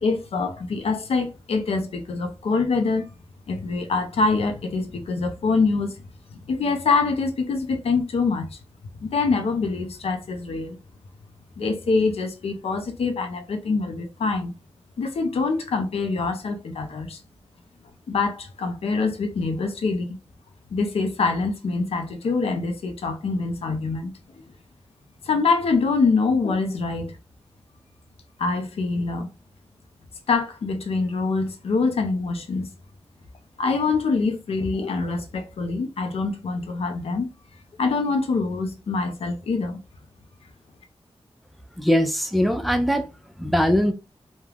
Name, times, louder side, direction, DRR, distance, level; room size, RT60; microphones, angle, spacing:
voice 1, 0.0-3.1 3.5-6.0 6.3-8.6 9.0-10.8 11.6-14.5 15.0-17.2 18.1-20.2 20.7-24.1 25.2-27.2 28.4-29.3 30.3-32.7 33.6-37.3 37.8-39.8, left 4 dB, 80° left, 0.5 m, -25 dB
voice 2, 41.8-43.1 43.4-43.9, equal, ahead, 0.4 m, -21 dB
2.3 x 2.2 x 3.2 m
wide cardioid pair, 100°, 10 cm